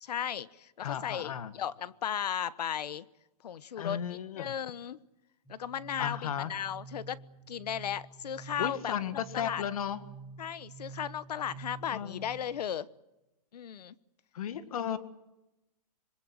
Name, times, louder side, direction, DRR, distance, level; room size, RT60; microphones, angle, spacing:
voice 1, 0.0-3.0 3.4-4.0 4.4-5.0 5.5-7.2 7.5-9.6 10.4-12.9 13.5-13.9, left 9 dB, 85° left, 17 dB, 1.2 m, -36 dB
voice 2, 0.8-1.5 3.8-4.5 6.0-6.5 8.6-10.0 11.9-12.3 14.3-15.0, left 9 dB, 65° left, 12 dB, 1.8 m, -34 dB
sound 1, 5.4-12.4, right 5 dB, ahead, 3.5 m, -49 dB
26.0 x 22.0 x 7.9 m, 0.96 s
hypercardioid pair, 175°, 20 cm